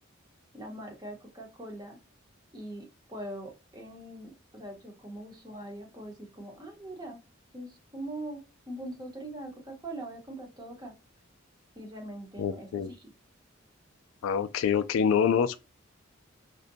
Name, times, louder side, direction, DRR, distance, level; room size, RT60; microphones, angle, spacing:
voice 1, 0.5-2.0 2.5-7.2 7.5-8.4 8.7-10.9 11.8-13.1, right 1 dB, 20° right, 0.8 m, -42 dB
voice 2, 12.4-12.9 14.2-15.6, left 7 dB, 85° left, 0.3 m, -26 dB
2.6 x 2.1 x 2.6 m
head